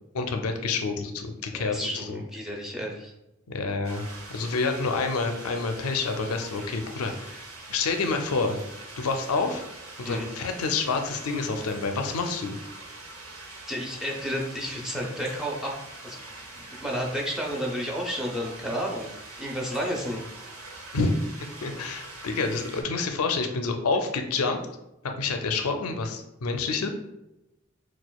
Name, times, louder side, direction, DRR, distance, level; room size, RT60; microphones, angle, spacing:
voice 1, 0.1-2.2 3.5-4.0 4.3-7.4 7.7-8.6 9.0-9.6 10.0-12.5 20.9-21.2 21.6-24.6 25.2-26.9, left 4 dB, 80° left, 5 dB, 0.5 m, -28 dB
voice 2, 1.6-3.1 10.0-10.3 13.7-15.7 16.0-16.2 16.8-19.1 19.4-20.2, equal, ahead, -2 dB, 0.6 m, -31 dB
sound 1, 3.8-22.8, right 2 dB, 70° right, 0.8 m, -43 dB
6.1 x 2.3 x 2.3 m, 0.90 s
head